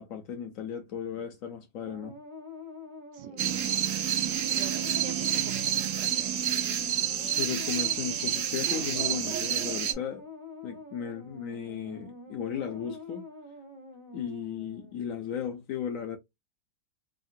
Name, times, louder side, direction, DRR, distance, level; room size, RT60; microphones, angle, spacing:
voice 1, 0.0-2.2 7.3-10.3 10.6-13.3 14.1-16.2, left 8 dB, 75° left, 0.7 m, -35 dB
sound 1, 1.8-15.1, left 2 dB, 30° right, 0.5 m, -46 dB
voice 2, 3.1-3.5 4.5-6.5, right 8 dB, 75° right, 1.1 m, -46 dB
sound 2, 3.4-9.9, right 9 dB, 90° right, 0.6 m, -29 dB
3.6 x 2.1 x 2.4 m
omnidirectional pair, 2.1 m